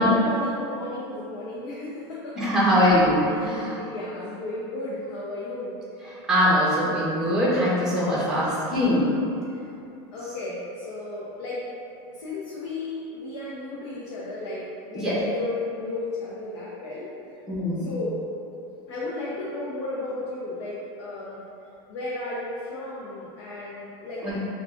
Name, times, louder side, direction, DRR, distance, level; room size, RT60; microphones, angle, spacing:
voice 1, 0.0-2.9 3.3-5.8 8.3-8.6 9.3-9.7 10.1-11.6 12.2-17.1 17.7-18.2 18.9-21.4 21.9-24.4, left 2 dB, 85° left, -7 dB, 0.6 m, -34 dB
voice 2, 2.3-3.8 6.1-9.1 14.9-15.2 17.5-17.9 24.2-24.4, equal, 5° right, -8 dB, 0.9 m, -22 dB
4.9 x 2.3 x 2.4 m, 2.6 s
supercardioid pair, 150°, 14 cm